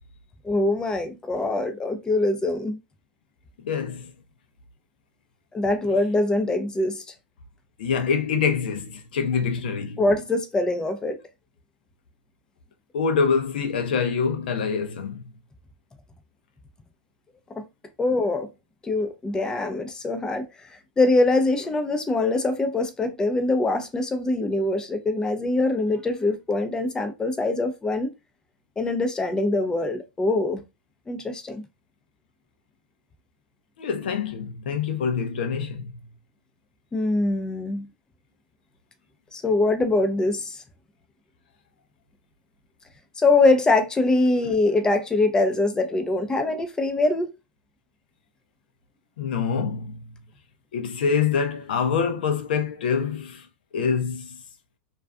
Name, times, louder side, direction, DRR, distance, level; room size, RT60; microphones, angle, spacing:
voice 1, 0.4-2.8 5.5-7.0 10.0-11.2 17.6-17.7 18.0-18.5 18.8-20.5 21.0-28.1 28.8-30.6 31.1-31.6 36.9-37.9 39.3-40.6 43.2-47.3, left 2 dB, 15° left, 0.4 m, -23 dB
voice 2, 3.6-4.1 7.8-10.1 12.9-15.2 33.8-35.9 49.2-50.1 50.7-53.5 53.7-54.4, left 6 dB, 75° left, 0.5 m, -25 dB
2.4 x 2.3 x 2.3 m
hypercardioid pair, 105°, 5 cm